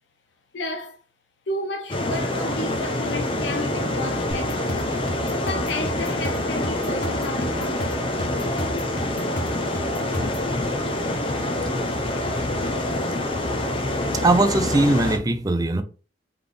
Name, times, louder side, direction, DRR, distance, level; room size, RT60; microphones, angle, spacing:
voice 1, 0.5-1.0 1.5-4.9 5.4-8.5, left 1 dB, 70° left, 0.7 m, -32 dB
sound 1, 1.9-15.2, left 1 dB, 30° left, 0.6 m, -26 dB
sound 2, 4.3-10.5, equal, 50° left, 1.4 m, -33 dB
voice 2, 14.1-15.8, right 2 dB, 20° right, 0.4 m, -20 dB
4.0 x 3.3 x 3.3 m
head